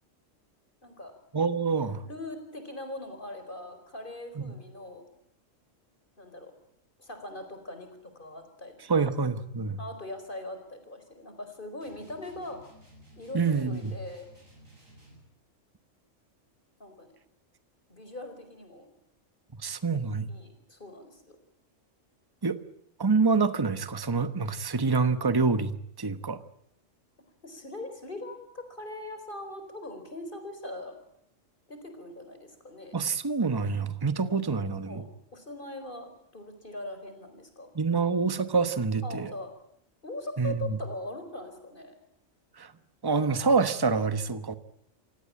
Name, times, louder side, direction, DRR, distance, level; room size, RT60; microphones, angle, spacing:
voice 1, 0.8-1.1 2.0-5.0 6.2-6.5 7.0-7.9 8.1-9.1 9.8-12.6 13.2-14.3 16.8-17.1 17.9-18.9 20.3-21.4 27.4-30.9 31.7-33.0 34.8-35.0 35.3-37.7 39.0-39.5 40.0-41.9, left 1 dB, 40° left, 7 dB, 4.8 m, -41 dB
voice 2, 1.3-2.0 4.4-4.5 8.9-9.8 13.3-13.9 19.6-20.3 22.4-22.6 23.0-26.4 32.9-35.0 37.7-39.3 40.4-40.8 42.6-42.7 43.0-44.6, right 4 dB, 20° right, 12 dB, 1.1 m, -26 dB
sound 1, 11.8-15.3, equal, 85° right, 7.9 m, -55 dB
28.0 x 17.5 x 8.7 m, 0.74 s
omnidirectional pair, 1.3 m